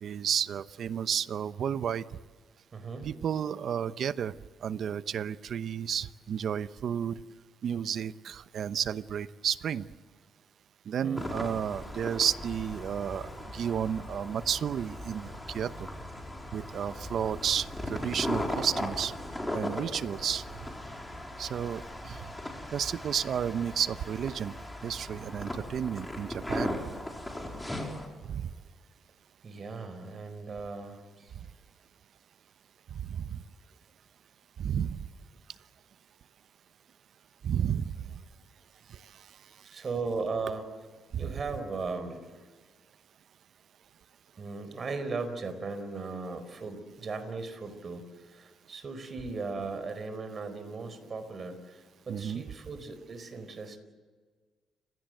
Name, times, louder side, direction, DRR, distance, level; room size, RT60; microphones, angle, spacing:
voice 1, 0.0-2.0 3.0-4.3 4.6-7.2 7.6-9.9 10.9-15.7 16.5-19.1 19.5-20.5 21.4-22.3 22.7-24.5 24.8-26.8 28.2-28.5 32.9-33.4 34.6-35.1 37.4-38.1 38.9-39.0 41.1-41.2 52.1-52.4, right 8 dB, 60° right, 14 dB, 0.8 m, -32 dB
voice 2, 2.7-3.1 11.0-11.3 29.4-31.4 39.6-40.7 41.2-42.4 44.4-53.8, right 4 dB, 40° right, 10 dB, 4.4 m, -37 dB
sound 1, 11.2-28.1, left 1 dB, 10° left, 4.4 m, -38 dB
30.0 x 17.0 x 7.8 m, 1.5 s
cardioid pair, 90°, 0 cm